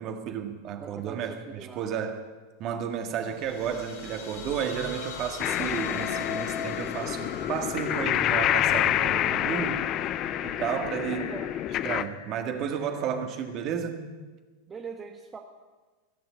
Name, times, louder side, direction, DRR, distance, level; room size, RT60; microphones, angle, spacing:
voice 1, 0.0-2.3 2.6-9.9 10.4-11.3 11.8-14.1, right 8 dB, 45° right, 6 dB, 1.8 m, -32 dB
voice 2, 0.8-2.1 11.1-11.5 14.7-15.4, right 5 dB, 25° right, 3 dB, 1.2 m, -42 dB
sound 1, 3.2-13.8, left 5 dB, 65° left, 2.6 m, -41 dB
sound 2, 5.4-12.0, left 12 dB, 40° left, 0.5 m, -28 dB
17.5 x 6.9 x 9.3 m, 1.3 s
hypercardioid pair, 95°, 0 cm